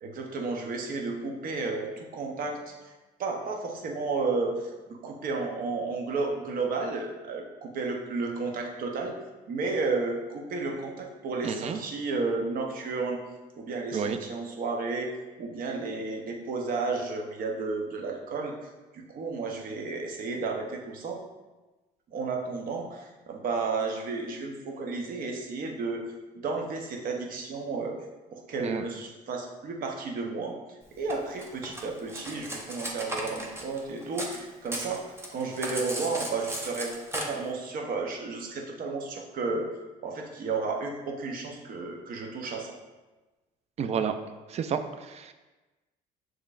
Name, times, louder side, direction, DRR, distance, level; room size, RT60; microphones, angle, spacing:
voice 1, 0.0-2.9 3.2-9.2 9.5-13.2 13.6-21.2 22.1-26.0 26.3-28.0 28.3-30.6 31.0-35.1 35.3-39.7 40.0-42.7, right 3 dB, 55° right, 1 dB, 0.8 m, -32 dB
voice 2, 11.4-11.8 13.9-14.2 28.6-28.8 43.8-44.2 44.5-45.3, right 7 dB, 40° right, 9 dB, 0.4 m, -30 dB
Cutlery silverware, 31.1-34.4 34.7-37.2, right 1 dB, 15° right, 0.7 m, -36 dB
6.7 x 3.1 x 2.4 m, 1.2 s
cardioid pair, 110°, 17 cm